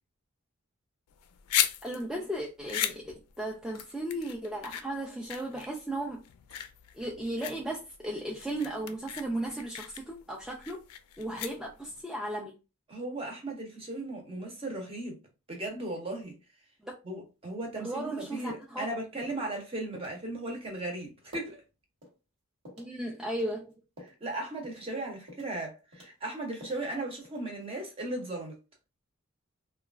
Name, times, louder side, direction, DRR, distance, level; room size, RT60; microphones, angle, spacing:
sound 1, 1.1-12.0, left 11 dB, 75° left, 0.3 m, -36 dB
voice 1, 1.8-6.2 6.9-10.8 11.2-12.6 16.8-16.9 17.8-18.9 22.8-23.7, right 1 dB, 5° right, 0.3 m, -35 dB
voice 2, 12.9-15.2 15.5-16.4 17.0-21.6 24.0-28.5, right 2 dB, 25° right, 0.8 m, -37 dB
sound 2, 18.1-18.2 18.5-18.8 19.2-19.5 19.9-20.2 20.7-20.8 21.3-21.6 22.0-22.2 22.6-22.9 23.3-24.2 24.6-24.9 25.3-25.6 25.9-26.9 27.2-27.6, left 1 dB, 60° right, 1.3 m, -50 dB
3.0 x 2.3 x 2.4 m
head